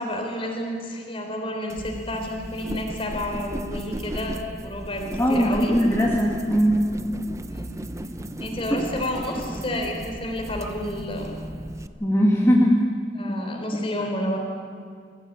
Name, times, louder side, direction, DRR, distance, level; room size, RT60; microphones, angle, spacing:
voice 1, 0.0-5.8 7.5-7.7 8.4-11.3 13.2-14.4, left 1 dB, 30° left, 2 dB, 3.8 m, -30 dB
sound 1, 1.7-11.9, right 1 dB, 15° right, 0.7 m, -35 dB
voice 2, 5.2-6.9 12.0-12.8 13.3-13.4, equal, 15° left, -3 dB, 2.0 m, -20 dB
23.5 x 15.0 x 8.7 m, 2.1 s
head